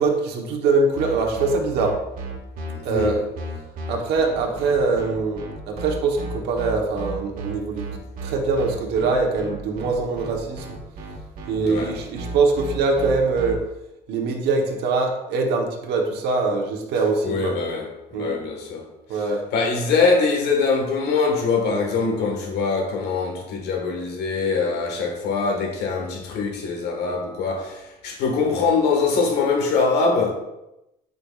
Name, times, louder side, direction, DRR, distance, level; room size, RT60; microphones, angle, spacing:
voice 1, 0.0-1.9 2.8-3.2 3.9-10.6 11.5-13.6 14.1-17.5 18.1-18.3 19.1-19.4, right 3 dB, 85° right, 1.1 m, -23 dB
sound 1, 1.0-13.6, right 2 dB, 55° right, 1.7 m, -33 dB
voice 2, 2.7-3.1 11.6-11.9 17.2-18.8 19.1-19.2 19.5-30.3, left 4 dB, 80° left, 1.6 m, -23 dB
8.1 x 5.2 x 2.4 m
cardioid pair, 110°, 17 cm